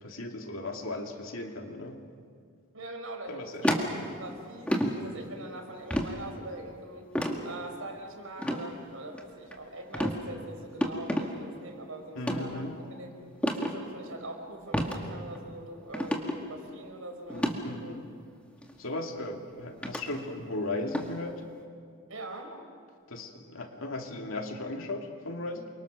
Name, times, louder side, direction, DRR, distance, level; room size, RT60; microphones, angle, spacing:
voice 1, 0.0-2.0 3.3-3.8 12.2-12.8 17.3-18.1 18.8-21.4 23.1-25.7, left 2 dB, 80° left, 3 dB, 2.5 m, -37 dB
voice 2, 2.7-7.1 7.4-13.2 13.6-18.0 22.1-22.5, right 2 dB, 85° right, 3 dB, 4.8 m, -43 dB
sound 1, 3.6-4.3 4.7-4.9 5.9-6.1 7.1-7.4 8.4-8.6 9.1-9.5 9.9-10.2 10.8-11.3 12.2-12.4 13.4-13.7 14.7-15.0 15.3-15.4 15.9-16.4 17.3-17.5 18.6-18.7 19.8-20.0 20.9-21.1, equal, 5° left, 1.9 m, -28 dB
28.5 x 24.5 x 6.3 m, 2.2 s
head